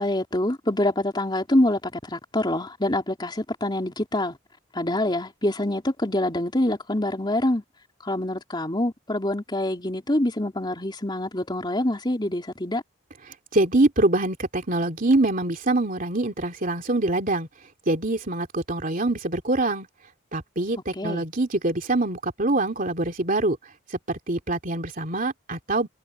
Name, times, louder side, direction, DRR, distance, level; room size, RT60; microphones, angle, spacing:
voice 1, 0.0-4.4 4.7-7.6 8.0-12.8 21.0-21.2, left 1 dB, 20° left, 3.6 m, -25 dB
voice 2, 13.5-17.5 17.9-19.9 20.3-23.6 24.1-25.9, right 2 dB, 40° right, 3.1 m, -24 dB
head